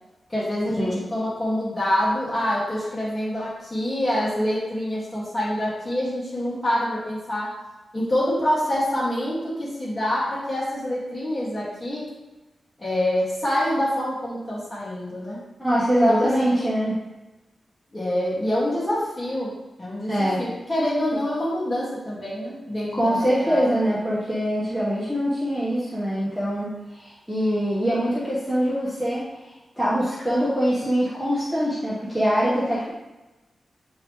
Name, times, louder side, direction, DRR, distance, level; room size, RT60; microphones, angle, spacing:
voice 1, 0.3-7.5 7.9-12.0 12.8-15.4 16.1-16.3 17.9-23.7, left 1 dB, 20° left, -8 dB, 1.9 m, -26 dB
voice 2, 15.6-17.0 20.1-20.4 22.9-29.5 29.8-32.9, equal, ahead, -8 dB, 1.3 m, -23 dB
8.8 x 3.1 x 3.7 m, 1.1 s
wide cardioid pair, 115°, 0 cm